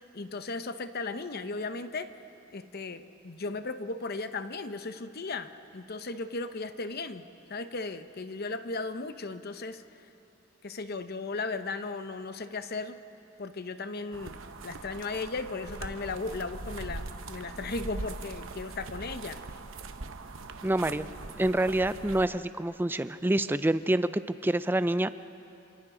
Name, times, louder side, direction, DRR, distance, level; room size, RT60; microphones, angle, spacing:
voice 1, 0.1-2.1 2.5-10.1 10.6-13.0 13.4-19.4, left 3 dB, 50° left, 10 dB, 0.8 m, -36 dB
sound 1, 14.1-22.3, right 3 dB, 70° right, 0.9 m, -41 dB
voice 2, 20.6-21.1 21.4-25.1, right 1 dB, 10° right, 13 dB, 0.4 m, -27 dB
27.5 x 26.0 x 3.9 m, 2.9 s
head